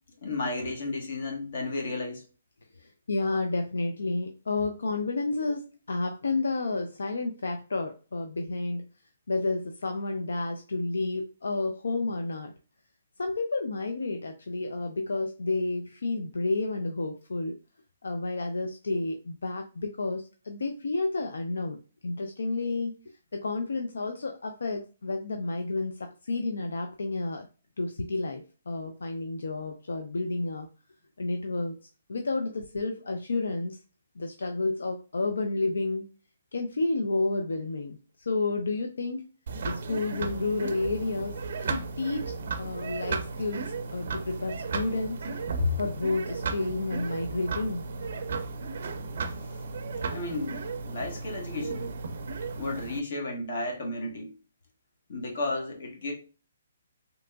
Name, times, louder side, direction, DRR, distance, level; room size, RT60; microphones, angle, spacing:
voice 1, 0.2-2.2 45.6-45.8 50.1-52.0 52.6-54.3 55.1-56.1, left 3 dB, 60° left, 1.2 m, -32 dB
voice 2, 2.8-8.9 9.3-12.5 13.2-17.6 18.0-21.8 22.0-22.9 23.3-27.5 27.8-30.7 31.2-31.8 32.1-33.8 34.2-36.1 36.5-39.3 39.6-45.2 45.8-47.9, left 3 dB, 85° left, 0.4 m, -31 dB
sound 1, 39.5-53.0, right 4 dB, 55° right, 0.4 m, -35 dB
3.4 x 2.9 x 2.2 m
hypercardioid pair, 160°, 0 cm